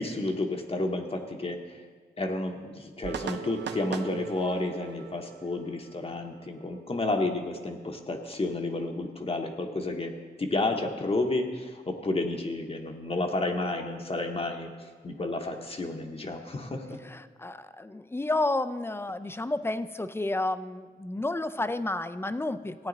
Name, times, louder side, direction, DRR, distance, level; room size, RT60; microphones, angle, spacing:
voice 1, 0.0-1.6 2.2-14.7 15.0-17.0, left 2 dB, 35° left, 2 dB, 0.9 m, -31 dB
sound 1, 3.0-6.7, right 6 dB, 80° right, 0.6 m, -39 dB
voice 2, 17.0-22.9, left 2 dB, 15° left, 11 dB, 0.4 m, -31 dB
15.5 x 9.2 x 3.9 m, 1.5 s
wide cardioid pair, 120°, 18 cm